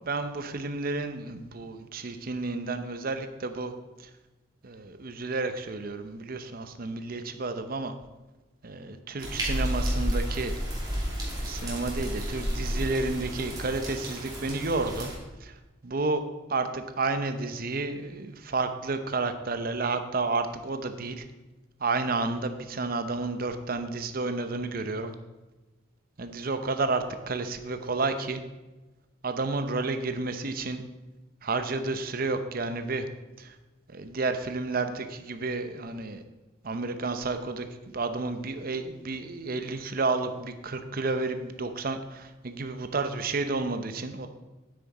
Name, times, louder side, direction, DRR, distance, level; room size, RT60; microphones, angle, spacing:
voice 1, 0.0-3.7 4.0-4.1 4.6-7.9 8.6-10.5 11.3-15.1 15.4-15.5 15.8-16.2 16.5-21.2 21.8-25.1 26.2-28.4 29.2-30.8 31.4-33.1 33.4-33.5 33.9-36.2 36.6-44.3, right 3 dB, 50° right, 8 dB, 0.7 m, -31 dB
sound 1, 9.2-15.2, equal, 20° right, 2.5 m, -31 dB
9.5 x 8.7 x 4.2 m, 1.1 s
head